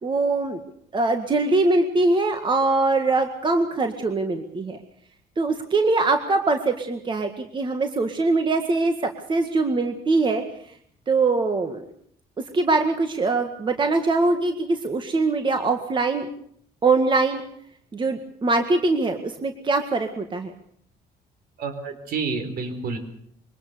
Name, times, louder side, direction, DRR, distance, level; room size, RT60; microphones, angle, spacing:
voice 1, 0.0-0.6 0.9-4.8 5.4-8.9 9.3-10.4 11.1-11.8 12.5-16.3 16.8-17.4 17.9-20.5, right 3 dB, 30° right, 6 dB, 1.9 m, -22 dB
voice 2, 21.6-23.0, right 4 dB, 65° right, 8 dB, 4.6 m, -29 dB
23.5 x 19.0 x 6.9 m, 0.67 s
cardioid pair, 110°, 17 cm